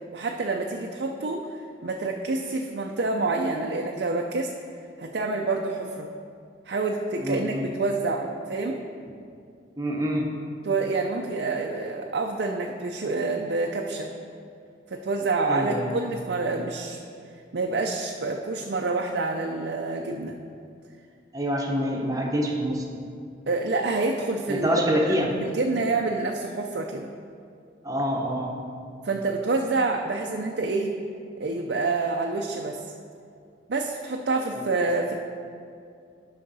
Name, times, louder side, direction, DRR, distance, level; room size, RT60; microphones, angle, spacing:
voice 1, 0.1-1.5 1.8-4.5 5.0-6.1 6.7-8.8 10.6-14.1 14.9-17.0 17.5-20.3 23.5-27.1 29.0-31.0 31.4-32.9 33.7-35.2, right 3 dB, 55° right, 1 dB, 0.5 m, -27 dB
voice 2, 7.2-7.7 9.8-10.3 15.5-15.9 21.3-23.0 24.5-25.3 27.8-28.6, equal, 20° right, 0 dB, 0.9 m, -26 dB
11.0 x 5.7 x 4.0 m, 2.4 s
head